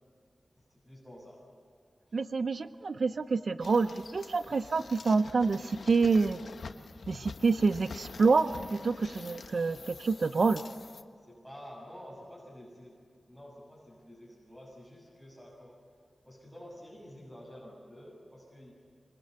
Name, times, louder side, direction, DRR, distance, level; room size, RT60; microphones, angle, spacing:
voice 1, 0.8-1.4 2.0-2.2 11.2-13.0 13.3-15.7 16.3-18.7, equal, 10° right, -5 dB, 7.2 m, -49 dB
voice 2, 2.1-6.4 7.1-10.6, right 4 dB, 65° right, 12 dB, 0.6 m, -27 dB
sound 1, 3.6-11.0, left 4 dB, 85° left, 1.1 m, -46 dB
27.0 x 22.5 x 8.1 m, 2.3 s
wide cardioid pair, 100°, 0 cm